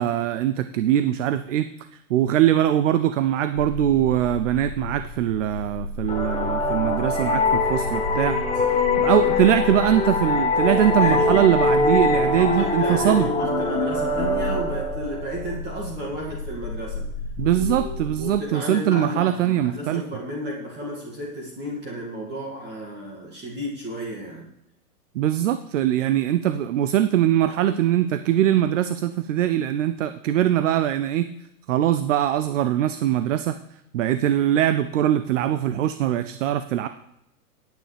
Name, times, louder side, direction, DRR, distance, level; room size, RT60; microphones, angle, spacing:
voice 1, 0.0-1.7 2.1-8.4 9.0-13.3 17.4-20.0 25.1-31.3 31.7-33.6 33.9-36.9, right 11 dB, 55° right, 11 dB, 0.7 m, -22 dB
sound 1, 3.6-18.4, left 3 dB, 65° left, 1.1 m, -33 dB
sound 2, 6.1-15.5, left 3 dB, 10° left, 1.5 m, -23 dB
voice 2, 10.6-11.4 12.1-17.1 17.5-17.9 18.2-24.5, equal, 20° right, -3 dB, 2.3 m, -32 dB
16.5 x 9.2 x 3.4 m, 0.83 s
hypercardioid pair, 135°, 47 cm